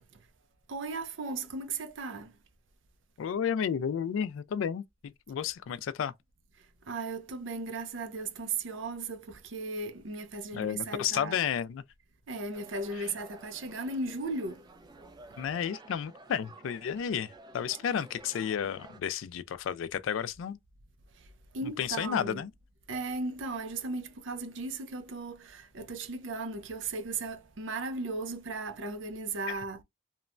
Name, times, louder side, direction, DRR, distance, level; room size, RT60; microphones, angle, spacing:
voice 1, 0.7-2.3 6.9-11.4 12.3-14.7 21.2-22.4 22.9-29.8, right 3 dB, 70° right, 0.5 m, -36 dB
voice 2, 3.2-6.1 10.5-11.8 13.0-13.1 15.4-20.6 21.6-22.5 29.5-29.6, left 8 dB, 80° left, 0.3 m, -32 dB
sound 1, 12.5-19.0, right 3 dB, 20° right, 0.4 m, -52 dB
3.0 x 2.1 x 2.4 m
head